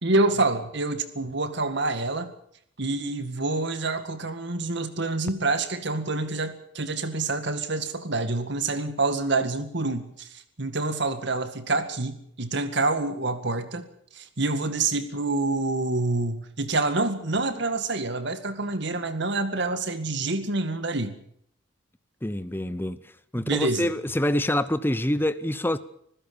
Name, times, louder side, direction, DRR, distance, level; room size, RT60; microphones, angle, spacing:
voice 1, 0.0-2.3 2.8-10.3 10.6-13.8 14.1-21.2 23.3-23.9, right 3 dB, 60° right, 2.1 m, -27 dB
voice 2, 22.2-23.0 23.3-25.8, left 1 dB, 10° left, 0.7 m, -26 dB
26.0 x 15.5 x 7.1 m
head